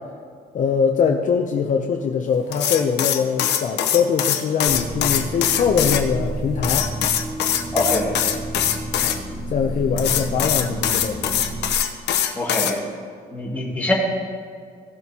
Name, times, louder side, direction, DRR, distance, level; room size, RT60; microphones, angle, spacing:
voice 1, 0.5-6.9 9.0-9.2 9.5-11.4 13.6-13.9, left 6 dB, 50° left, 3 dB, 0.7 m, -22 dB
sound 1, 2.5-6.0 6.6-9.2 10.0-12.7, left 10 dB, 85° left, 0.9 m, -22 dB
sound 2, 4.7-11.8, right 2 dB, 20° right, 1.2 m, -31 dB
voice 2, 7.7-8.1 12.4-12.8 13.3-13.9, left 1 dB, 10° left, -4 dB, 2.3 m, -23 dB
16.5 x 7.9 x 2.9 m, 2.1 s
cardioid pair, 125°, 17 cm